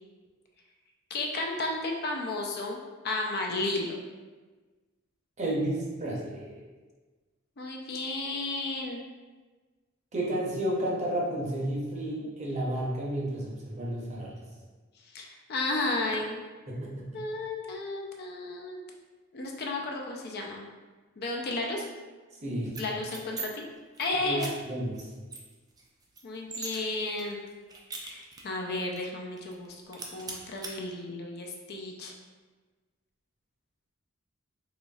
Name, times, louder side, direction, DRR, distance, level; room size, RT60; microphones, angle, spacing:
voice 1, 1.1-2.8 3.0-4.0 7.6-9.0 15.1-16.4 17.1-18.8 19.3-20.6 21.2-21.9 22.8-23.6 24.0-24.5 26.2-27.4 28.0-32.1, left 2 dB, 50° left, 0 dB, 0.4 m, -33 dB
voice 2, 5.4-6.6 10.1-14.3 16.7-17.2 22.4-22.8 24.2-25.1, right 1 dB, 35° right, -4 dB, 0.7 m, -32 dB
sound 1, 22.7-23.5 23.8-24.0 24.4-24.5 24.9-25.0 25.3-26.8 27.2-28.6 29.0-29.1 29.4-29.7 29.9-30.7, right 3 dB, 20° right, 0.3 m, -40 dB
4.0 x 3.0 x 2.3 m, 1.3 s
head